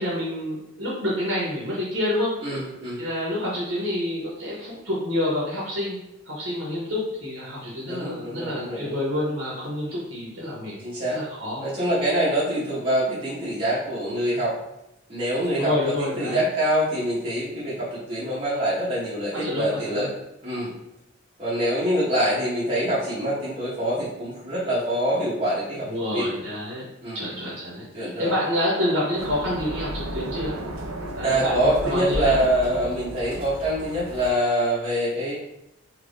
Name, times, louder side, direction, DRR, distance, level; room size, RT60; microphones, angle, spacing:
voice 1, 0.0-2.4 3.0-6.0 6.3-10.8 11.1-11.6 15.6-16.4 19.3-20.1 25.9-26.9 27.1-30.6 31.1-32.4, left 1 dB, 65° right, -5 dB, 0.9 m, -28 dB
voice 2, 2.4-3.0 7.9-9.0 10.8-11.2 11.6-14.6 15.1-20.1 20.4-20.7 21.4-26.3 27.0-27.3 27.9-28.3 31.2-35.3, right 1 dB, 25° right, -10 dB, 0.9 m, -25 dB
sound 1, 29.2-34.3, right 1 dB, 90° right, 0.5 m, -33 dB
2.8 x 2.6 x 3.4 m, 0.89 s
head